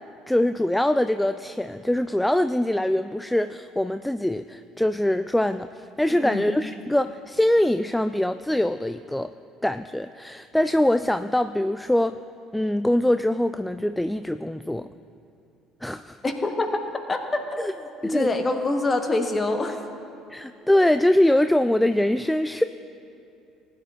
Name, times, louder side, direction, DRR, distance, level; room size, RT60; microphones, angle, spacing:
voice 1, 0.3-9.3 9.6-12.2 12.5-14.9 15.8-16.2 17.6-17.7 18.0-18.3 20.3-22.6, left 1 dB, 5° left, 11 dB, 0.3 m, -23 dB
voice 2, 16.2-16.8 17.1-19.8, left 2 dB, 25° left, 5 dB, 1.2 m, -26 dB
20.0 x 10.0 x 2.5 m, 2.7 s
figure-of-eight pair, 55°, 0 cm